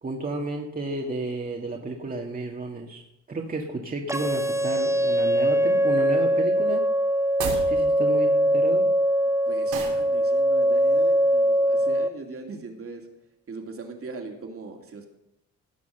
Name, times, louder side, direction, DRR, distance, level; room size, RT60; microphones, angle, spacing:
voice 1, 0.0-3.0 3.3-6.8 7.4-8.8, right 2 dB, 30° right, 0 dB, 1.8 m, -32 dB
sound 1, 4.1-12.1, equal, 10° right, 1.0 m, -22 dB
sound 2, 7.3-7.7 9.7-10.0, right 6 dB, 85° right, 3.8 m, -31 dB
voice 2, 9.5-13.1 13.5-15.1, right 4 dB, 50° right, 3 dB, 2.7 m, -40 dB
17.5 x 6.1 x 6.6 m, 0.81 s
cardioid pair, 90°, 30 cm